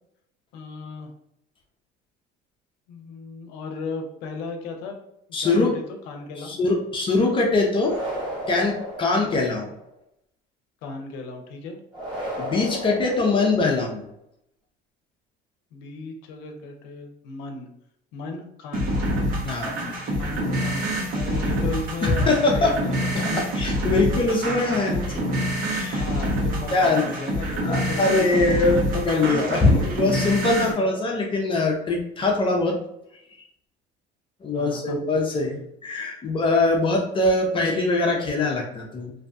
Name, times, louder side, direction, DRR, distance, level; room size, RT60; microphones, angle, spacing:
voice 1, 0.5-1.1 2.9-5.0 5.4-6.6 10.8-11.8 15.7-17.7 18.1-19.0 20.1-23.4 24.1-24.2 25.9-28.8 34.5-35.0, left 3 dB, 80° left, 4 dB, 0.6 m, -35 dB
voice 2, 5.3-5.7 6.4-8.0 8.5-9.7 12.4-14.0 19.4-19.8 22.0-22.7 23.1-25.3 25.7-26.0 26.7-27.0 27.6-32.8 33.4-33.5 34.4-39.1, left 3 dB, 30° left, 0 dB, 0.5 m, -22 dB
sound 1, 7.7-9.8 11.9-14.0, equal, 25° right, 1.1 m, -34 dB
sound 2, 18.7-30.7, right 1 dB, 55° right, 0.9 m, -26 dB
2.6 x 2.2 x 2.5 m, 0.78 s
supercardioid pair, 105°, 17 cm